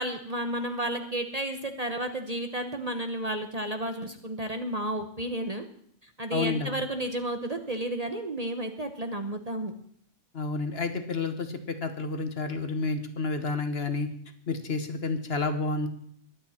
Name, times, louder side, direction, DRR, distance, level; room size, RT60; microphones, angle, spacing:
voice 1, 0.0-5.7 6.0-9.7, right 1 dB, 30° right, 6 dB, 1.0 m, -32 dB
voice 2, 6.3-6.7 10.3-14.1 14.5-15.9, left 3 dB, 50° left, 8 dB, 1.3 m, -30 dB
22.0 x 8.6 x 4.3 m, 0.65 s
omnidirectional pair, 1.4 m